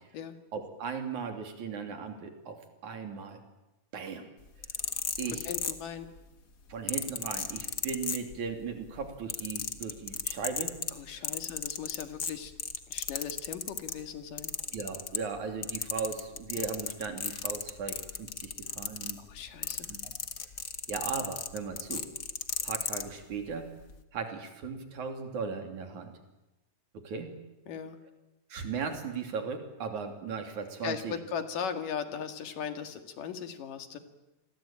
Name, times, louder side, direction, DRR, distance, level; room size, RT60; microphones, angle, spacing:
voice 1, 0.5-3.4 3.9-4.3 5.2-5.5 6.7-10.7 11.1-11.4 14.7-19.2 19.9-20.1 20.9-22.1 22.6-23.7 24.1-26.1 26.9-27.3 28.5-31.1, right 5 dB, 65° right, 5 dB, 4.3 m, -37 dB
sound 1, 4.5-6.2 6.9-8.6 9.0-14.0 14.4-15.4 15.6-23.1 23.8-24.0, left 6 dB, 40° left, 1.6 m, -34 dB
voice 2, 5.3-6.1 10.9-12.5 12.9-14.5 19.2-20.0 27.7-28.0 30.8-34.0, left 7 dB, 85° left, 7 dB, 3.7 m, -38 dB
28.0 x 22.0 x 8.9 m, 1.0 s
omnidirectional pair, 3.7 m